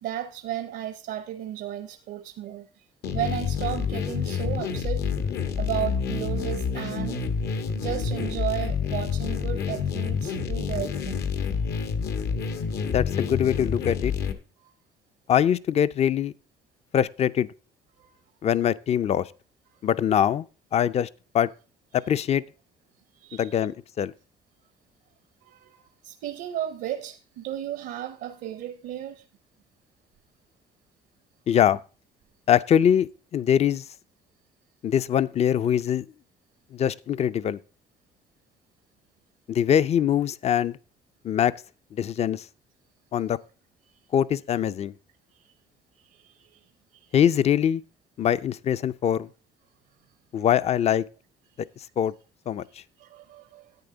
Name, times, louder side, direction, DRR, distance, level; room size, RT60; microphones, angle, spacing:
voice 1, 0.0-2.9 3.1-5.3 5.6-7.2 7.7-11.8 14.6-14.7 18.0-18.2 23.1-23.5 25.4-29.2 43.9-44.0 45.3-45.5 45.9-47.1 51.5-51.6 53.0-53.8, right 11 dB, 75° right, 0.7 m, -34 dB
sound 1, 3.0-14.3, left 6 dB, 70° left, 1.3 m, -28 dB
voice 2, 12.8-14.1 15.3-16.3 16.9-17.5 18.4-19.3 19.8-20.5 20.7-21.1 21.3-21.5 21.9-22.4 23.3-24.1 31.5-31.8 32.5-33.8 34.8-36.1 36.7-37.6 39.5-40.8 41.2-41.5 41.9-42.4 43.1-43.4 44.1-44.9 47.1-47.8 48.2-49.3 50.3-51.0 52.0-52.1 52.5-52.6, left 9 dB, 40° left, 0.5 m, -23 dB
10.5 x 8.7 x 3.8 m
cardioid pair, 110°, 17 cm